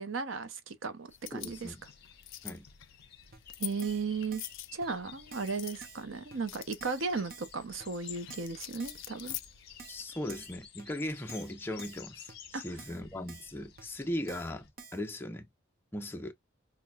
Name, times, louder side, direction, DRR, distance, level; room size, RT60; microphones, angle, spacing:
voice 1, 0.0-1.7 3.6-4.4 4.7-9.4 12.5-12.6, right 4 dB, 85° right, 0.7 m, -35 dB
sound 1, 1.1-10.0, left 15 dB, 75° left, 0.5 m, -47 dB
voice 2, 1.3-1.8 2.4-2.7 9.9-15.5 15.9-16.3, left 1 dB, 10° left, 0.6 m, -38 dB
sound 2, 1.4-14.7, left 8 dB, 55° left, 1.0 m, -53 dB
Keyboard (musical), 3.3-3.4 3.8-4.1 4.3-4.6 4.8-4.9 5.3-5.5 5.8-6.0 6.3-6.4 6.8-7.0 7.3-7.5 7.8-7.9 8.3-8.5 8.8-9.0 9.3-9.4 9.8-10.0 10.3-10.5 10.8-10.9 11.3-11.5 11.8-12.0 12.3-12.4 12.8-13.0 13.3-13.5 13.8-13.9 14.3-14.5 14.8-15.0, right 4 dB, 50° right, 0.7 m, -50 dB
5.5 x 2.3 x 2.3 m
head